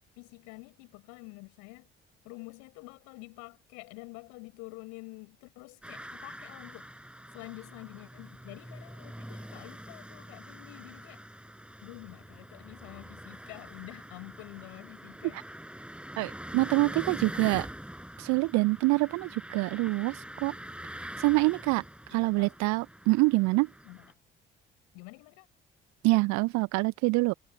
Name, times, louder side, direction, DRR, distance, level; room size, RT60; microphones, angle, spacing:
voice 1, 0.2-1.9 2.2-6.9 7.3-11.2 11.8-15.4 22.1-22.7 23.8-24.1 24.9-25.5, left 29 dB, 65° left, 7.2 m, -48 dB
sound 1, 5.8-24.1, equal, 5° right, 7.5 m, -44 dB
voice 2, 16.2-17.7 18.2-20.6 21.2-21.8 22.1-23.7 26.0-27.3, right 25 dB, 60° right, 1.1 m, -26 dB
figure-of-eight pair, 45°, 32 cm